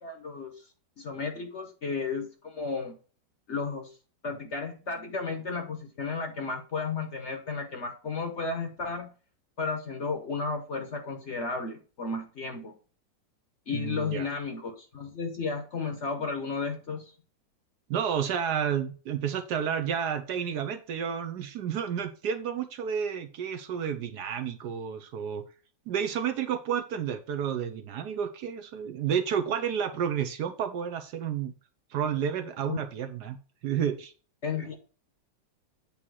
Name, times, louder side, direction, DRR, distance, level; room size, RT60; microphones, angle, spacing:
voice 1, 0.0-0.5 1.0-2.9 3.5-3.9 4.2-9.1 9.6-12.7 13.7-17.1 32.7-32.9 34.4-34.8, left 4 dB, 45° left, 5 dB, 1.0 m, -33 dB
voice 2, 13.7-14.3 17.9-25.4 25.9-31.5 31.9-33.4 33.6-34.1, right 8 dB, 70° right, 8 dB, 1.2 m, -31 dB
8.5 x 2.9 x 6.2 m, 0.38 s
omnidirectional pair, 2.0 m